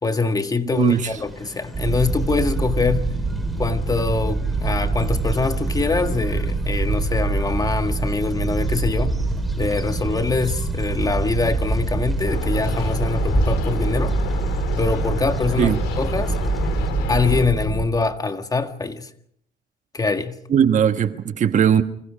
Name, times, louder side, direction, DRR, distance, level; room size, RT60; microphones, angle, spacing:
voice 1, 0.0-3.1 3.6-9.2 9.6-14.2 14.8-16.4 17.1-19.1 19.9-20.4, left 4 dB, 20° left, 1.8 m, -24 dB
sound 1, 0.7-16.9, right 1 dB, ahead, 5.1 m, -36 dB
voice 2, 0.7-1.1 15.6-15.8 20.5-21.8, right 8 dB, 45° right, 1.4 m, -18 dB
sound 2, 1.7-17.8, right 3 dB, 20° right, 7.2 m, -24 dB
sound 3, 12.2-17.5, left 8 dB, 90° left, 3.4 m, -33 dB
29.5 x 25.5 x 5.1 m
cardioid pair, 110°, 17 cm